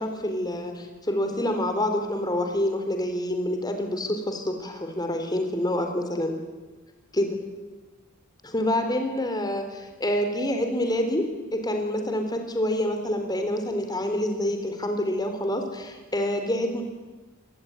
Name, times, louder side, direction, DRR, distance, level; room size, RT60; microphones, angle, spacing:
voice 1, 0.0-6.3 7.1-7.4 8.4-11.2 11.5-16.8, left 1 dB, 20° left, 5 dB, 3.7 m, -27 dB
27.5 x 20.0 x 9.7 m, 1.2 s
head